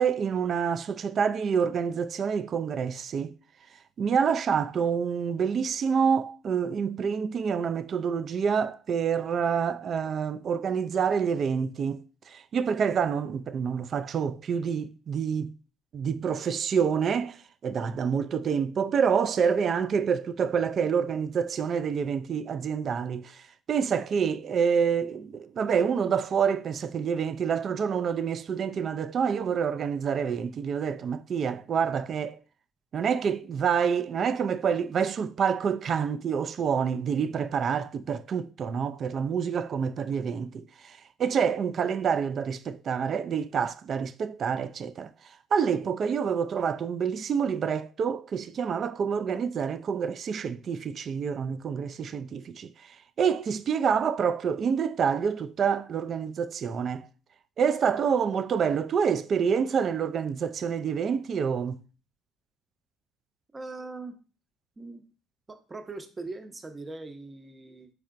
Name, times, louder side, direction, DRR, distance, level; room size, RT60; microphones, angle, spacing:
voice 1, 0.0-3.3 4.0-15.5 15.9-32.4 32.9-45.1 45.5-57.1 57.6-61.8, right 6 dB, 50° right, 0.3 m, -27 dB
voice 2, 63.5-64.2 64.8-65.0 65.5-67.9, right 3 dB, 30° right, 0.7 m, -40 dB
4.6 x 4.2 x 2.5 m
hypercardioid pair, 65°, 0 cm